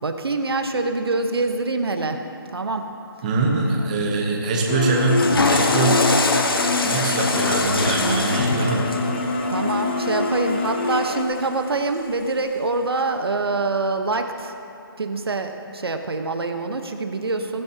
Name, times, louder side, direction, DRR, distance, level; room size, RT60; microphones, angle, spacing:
voice 1, 0.0-2.2 2.5-2.9 9.5-14.5 15.0-17.6, right 3 dB, 75° right, 6 dB, 1.1 m, -25 dB
voice 2, 3.2-6.0 6.8-8.9, right 3 dB, 20° right, -1 dB, 1.0 m, -23 dB
sound 1, 4.7-11.2, left 3 dB, 30° left, 0.8 m, -25 dB
Water / Toilet flush, 4.9-11.2, left 3 dB, 65° left, 1.3 m, -24 dB
16.0 x 15.5 x 2.9 m, 2.6 s
hypercardioid pair, 170°, 13 cm